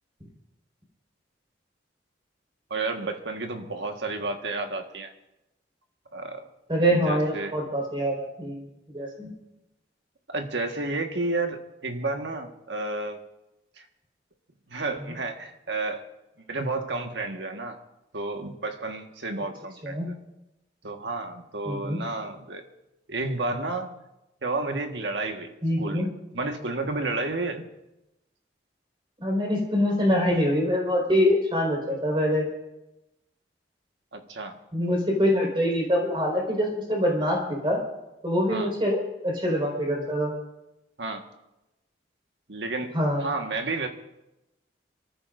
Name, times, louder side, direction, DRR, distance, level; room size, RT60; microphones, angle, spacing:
voice 1, 2.7-5.1 6.1-6.5 6.9-7.6 10.3-13.2 13.8-13.9 14.7-16.1 16.5-17.8 18.1-20.1 20.8-22.6 23.1-24.0 24.4-25.5 25.8-26.1 26.3-27.7 34.1-34.6 38.5-38.7 41.0-41.3 42.5-43.9, right 3 dB, 75° right, 4 dB, 1.5 m, -31 dB
voice 2, 6.7-8.6 8.9-9.3 19.8-20.1 21.6-22.0 25.6-26.1 29.2-32.4 34.7-37.8 38.2-40.3 42.9-43.3, equal, 30° right, -1 dB, 4.7 m, -24 dB
27.0 x 14.0 x 2.6 m, 0.94 s
head